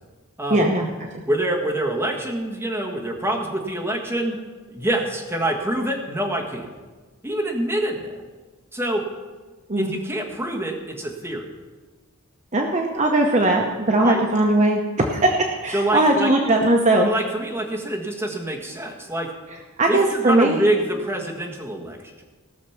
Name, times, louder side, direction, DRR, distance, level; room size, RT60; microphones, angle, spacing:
voice 1, 0.5-0.9 9.7-9.9 12.5-17.1 19.8-20.6, right 2 dB, 35° right, 1 dB, 0.9 m, -19 dB
voice 2, 1.3-4.4 4.7-6.7 7.2-8.1 8.7-9.0 9.8-11.5 14.0-14.2 15.7-16.3 17.0-19.3 19.9-22.2, right 1 dB, 10° right, -1 dB, 1.6 m, -26 dB
17.5 x 6.6 x 5.8 m, 1.4 s
head